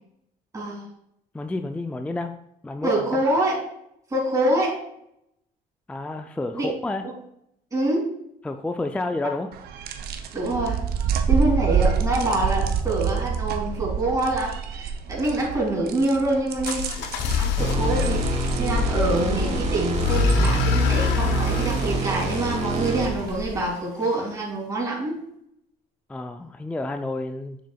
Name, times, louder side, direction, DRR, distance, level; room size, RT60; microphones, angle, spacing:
voice 1, 0.5-0.9 2.8-3.6 4.1-4.8 6.5-6.7 7.7-8.1 10.3-10.8 11.3-16.8 17.4-25.1, right 1 dB, 20° right, -4 dB, 2.4 m, -25 dB
voice 2, 1.3-2.3 2.6-3.2 5.9-7.0 8.4-9.5 26.1-27.6, left 2 dB, 5° left, 7 dB, 0.3 m, -30 dB
sound 1, 9.5-23.7, right 7 dB, 70° right, 0.7 m, -29 dB
sound 2, 16.6-23.5, left 4 dB, 85° left, 0.7 m, -25 dB
sound 3, 17.6-23.3, right 4 dB, 40° right, 1.3 m, -28 dB
6.9 x 6.2 x 2.3 m, 0.74 s
cardioid pair, 110°, 17 cm